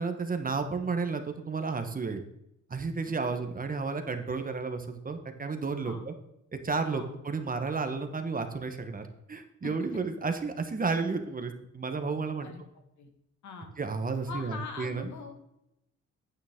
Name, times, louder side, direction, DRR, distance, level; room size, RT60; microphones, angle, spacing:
voice 1, 0.0-2.2 2.7-6.1 6.5-12.5 13.8-15.1, right 4 dB, 30° right, 7 dB, 1.2 m, -32 dB
voice 2, 14.3-15.3, left 5 dB, 70° left, 5 dB, 1.8 m, -42 dB
9.1 x 9.1 x 3.6 m, 0.83 s
cardioid pair, 90°, 30 cm